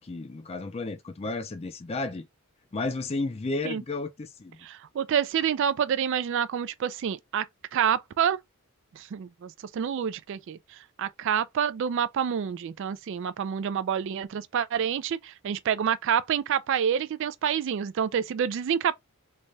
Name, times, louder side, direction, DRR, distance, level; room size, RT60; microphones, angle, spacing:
voice 1, 0.0-2.3 2.7-4.6, left 3 dB, 25° left, 0.4 m, -32 dB
voice 2, 4.6-7.5 7.7-8.4 9.0-18.9, right 8 dB, 55° right, 0.3 m, -28 dB
3.3 x 2.2 x 3.9 m
head